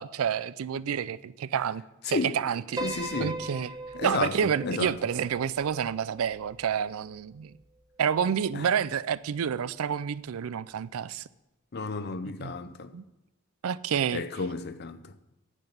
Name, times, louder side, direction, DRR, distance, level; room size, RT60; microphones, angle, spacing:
voice 1, 0.0-2.8 3.2-3.7 4.0-7.5 8.0-11.3 12.4-12.5 12.9-13.0 13.6-14.2, right 8 dB, 90° right, 0.4 m, -29 dB
voice 2, 2.0-2.4 2.8-3.5 3.9-5.0 8.5-8.7 11.7-12.9 14.1-15.2, left 3 dB, 50° left, 0.6 m, -32 dB
Piano, 2.8-7.2, right 2 dB, 15° right, 1.0 m, -39 dB
10.5 x 7.9 x 6.7 m
head